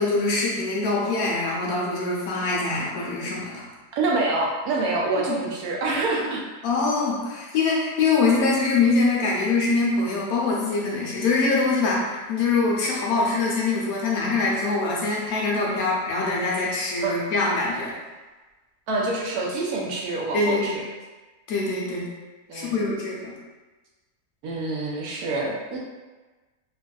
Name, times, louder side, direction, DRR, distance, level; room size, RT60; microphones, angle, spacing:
voice 1, 0.0-3.7 5.1-5.4 6.6-17.9 20.3-20.8 21.5-22.1 22.5-23.3, left 3 dB, 75° left, -3 dB, 1.1 m, -24 dB
voice 2, 3.9-6.4 8.3-8.4 17.0-17.2 18.9-20.8 22.5-22.8 24.4-25.8, right 2 dB, 80° right, -2 dB, 1.1 m, -26 dB
3.4 x 2.5 x 2.3 m, 1.2 s
omnidirectional pair, 1.6 m